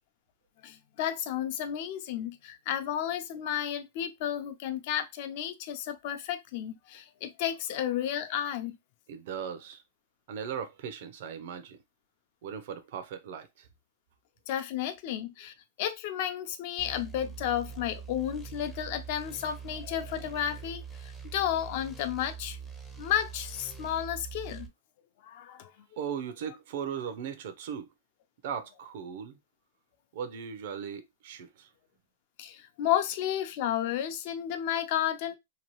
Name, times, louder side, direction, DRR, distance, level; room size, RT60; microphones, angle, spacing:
voice 1, 0.6-8.8 14.5-22.6 23.0-24.7 25.2-25.7 32.4-35.4, left 10 dB, 55° left, 0.5 m, -32 dB
voice 2, 9.1-9.8 10.3-11.8 12.4-13.7 26.0-27.9 28.4-29.4 30.1-31.7, right 7 dB, 60° right, 0.6 m, -38 dB
sound 1, 16.8-24.7, right 7 dB, ahead, 0.5 m, -43 dB
2.8 x 2.3 x 3.0 m
hypercardioid pair, 140°, 0 cm